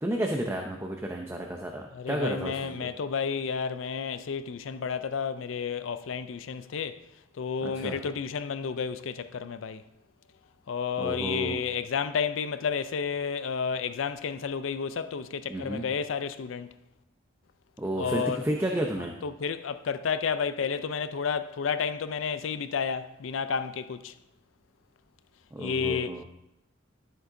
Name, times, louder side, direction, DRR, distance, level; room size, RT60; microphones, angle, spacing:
voice 1, 0.0-2.9 7.6-8.0 11.0-11.6 15.5-15.8 17.8-19.2 25.5-26.2, right 1 dB, 15° right, 0.6 m, -32 dB
voice 2, 2.0-7.0 7.4-9.8 10.7-16.7 18.0-18.4 19.2-24.1 25.6-26.2, left 6 dB, 75° left, 0.4 m, -31 dB
12.5 x 7.7 x 2.6 m
head